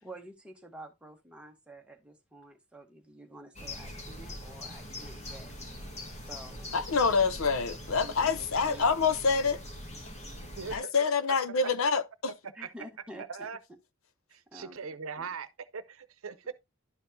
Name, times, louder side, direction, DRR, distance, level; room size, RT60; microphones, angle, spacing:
voice 1, 0.0-5.5 6.2-6.7 8.0-8.8 10.7-10.8 12.5-13.5 14.5-14.8 15.1-15.3, right 1 dB, 5° right, 1.2 m, -49 dB
sound 1, 3.5-10.8, left 1 dB, 35° left, 1.9 m, -42 dB
voice 2, 6.7-9.6 10.7-12.3, left 5 dB, 75° left, 0.6 m, -26 dB
voice 3, 10.6-10.9 12.6-12.7 13.2-13.6 14.3-15.5 15.7-16.5, right 5 dB, 85° right, 0.7 m, -40 dB
11.5 x 4.5 x 2.7 m
head